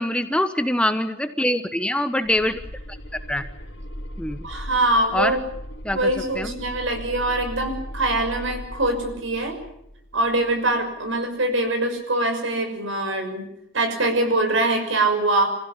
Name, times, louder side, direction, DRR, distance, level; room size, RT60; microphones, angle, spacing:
voice 1, 0.0-2.6 3.3-3.4 4.2-4.5 5.1-5.4 5.8-6.1 6.4-6.6, left 1 dB, 5° left, 9 dB, 1.0 m, -24 dB
sound 1, 2.2-11.1, equal, 60° left, 4.0 m, -38 dB
voice 2, 4.4-5.5 5.9-9.6 10.1-13.5 13.7-15.5, right 2 dB, 70° right, 6 dB, 6.2 m, -23 dB
27.0 x 16.0 x 9.8 m, 0.76 s
head